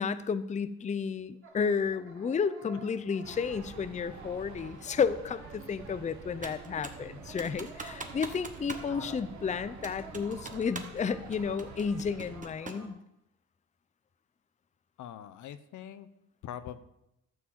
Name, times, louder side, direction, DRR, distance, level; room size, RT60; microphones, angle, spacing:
voice 1, 0.0-13.0, left 6 dB, 25° left, 14 dB, 0.5 m, -32 dB
sound 1, 1.4-12.9, right 2 dB, 45° right, 2.6 m, -51 dB
sound 2, 3.2-12.4, right 4 dB, 70° right, 1.4 m, -49 dB
Computer keyboard, 6.4-7.1 7.4-8.9 9.2-9.3 9.8-11.0 11.3-12.9, right 3 dB, 25° right, 1.3 m, -43 dB
voice 2, 15.0-16.1 16.4-16.8, left 10 dB, 75° left, 13 dB, 0.8 m, -43 dB
12.5 x 4.7 x 7.5 m, 0.84 s
cardioid pair, 90°, 30 cm